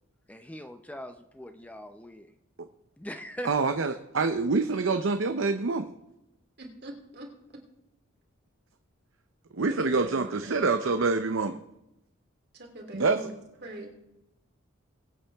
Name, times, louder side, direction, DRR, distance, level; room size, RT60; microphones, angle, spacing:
voice 1, 0.3-2.3 3.0-3.5, equal, 5° left, 7 dB, 0.5 m, -41 dB
voice 2, 3.4-5.9 9.5-11.6 12.9-13.2, right 4 dB, 70° right, 7 dB, 0.7 m, -26 dB
voice 3, 6.6-7.3 9.7-10.6 12.5-13.9, right 1 dB, 50° right, 1 dB, 3.0 m, -42 dB
22.0 x 8.5 x 3.5 m, 0.87 s
head